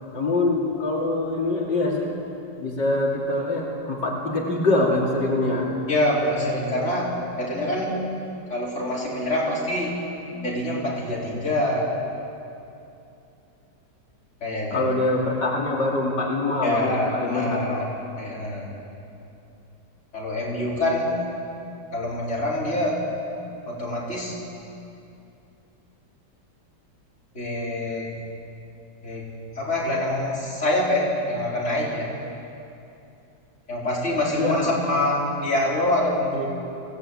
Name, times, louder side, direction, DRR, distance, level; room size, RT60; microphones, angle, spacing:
voice 1, 0.1-2.1 2.6-5.7 14.7-17.8 34.4-34.7, left 2 dB, 85° left, -3 dB, 3.5 m, -24 dB
voice 2, 5.9-7.1 7.4-7.9 8.5-9.9 10.3-11.8 14.4-14.9 16.6-17.8 18.1-18.7 20.1-21.1 21.9-23.0 23.7-24.4 27.3-28.1 29.0-29.2 29.5-32.1 33.7-36.5, left 1 dB, 40° left, -6 dB, 4.9 m, -25 dB
23.5 x 17.0 x 8.7 m, 2.8 s
omnidirectional pair, 1.8 m